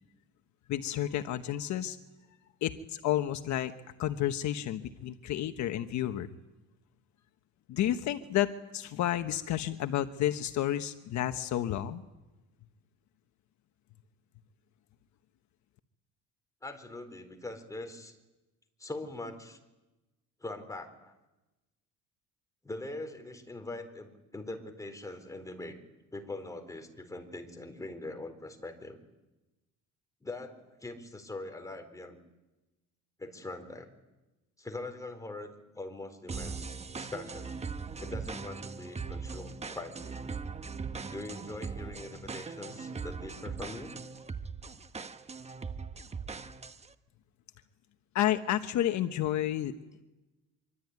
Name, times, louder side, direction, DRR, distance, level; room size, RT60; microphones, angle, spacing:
voice 1, 0.7-2.0 2.6-3.7 4.0-6.3 7.7-12.0 48.1-49.7, left 12 dB, 60° left, 8 dB, 1.3 m, -31 dB
voice 2, 16.6-18.1 18.8-19.6 20.4-21.1 22.6-25.8 26.1-29.0 30.2-32.2 33.2-33.9 34.6-37.5 38.0-40.2 41.1-43.9, left 2 dB, 10° left, 5 dB, 4.1 m, -42 dB
sound 1, 36.3-46.9, right 5 dB, 20° right, 1.2 m, -40 dB
25.5 x 24.5 x 9.6 m, 1.0 s
cardioid pair, 125°, 32 cm